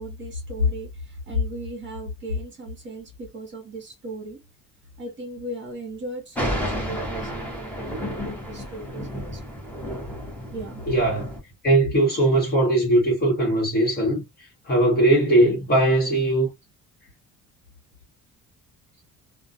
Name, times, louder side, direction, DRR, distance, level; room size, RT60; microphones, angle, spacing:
voice 1, 0.0-4.4 5.0-9.5 10.5-10.8, left 2 dB, 35° right, 1.0 m, -33 dB
Thunder, 6.3-11.4, equal, 5° left, 0.8 m, -31 dB
voice 2, 10.9-11.3 11.6-14.2 14.7-16.5, right 1 dB, 30° left, 1.1 m, -19 dB
2.3 x 2.1 x 2.6 m
cardioid pair, 165°, 31 cm